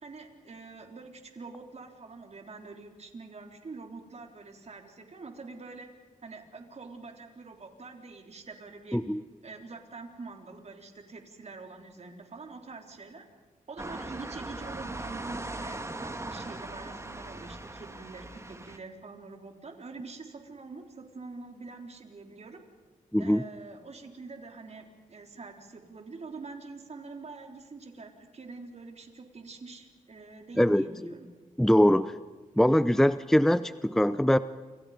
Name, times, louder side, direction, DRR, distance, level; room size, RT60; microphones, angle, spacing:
voice 1, 0.0-5.9 6.2-9.0 9.4-13.3 13.7-22.6 23.2-31.3, right 3 dB, 50° right, 3 dB, 4.0 m, -45 dB
sound 1, 13.8-18.8, right 2 dB, 20° right, 1.9 m, -39 dB
voice 2, 23.1-23.4 30.6-31.1 31.6-32.1 32.6-34.4, equal, 5° left, 14 dB, 0.7 m, -23 dB
29.0 x 27.5 x 5.2 m, 1.3 s
cardioid pair, 70°, 14 cm